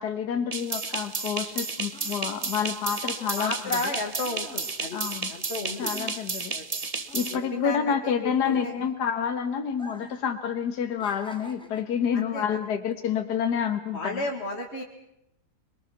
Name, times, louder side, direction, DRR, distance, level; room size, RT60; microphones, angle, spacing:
voice 1, 0.0-3.5 4.9-5.3 5.8-6.5 7.1-14.2, left 7 dB, 70° left, 7 dB, 1.9 m, -28 dB
sound 1, 0.5-7.4, right 4 dB, 25° right, 1.0 m, -32 dB
sound 2, 1.9-6.8 7.0-9.2 9.7-10.3 10.6-12.0 12.7-12.9, right 1 dB, 5° left, 2.0 m, -48 dB
voice 2, 3.4-5.0 5.3-5.9 6.5-6.7 7.2-8.7 12.1-12.4 13.9-14.8, left 2 dB, 40° left, 1 dB, 2.1 m, -33 dB
25.0 x 22.5 x 5.9 m, 0.83 s
omnidirectional pair, 1.8 m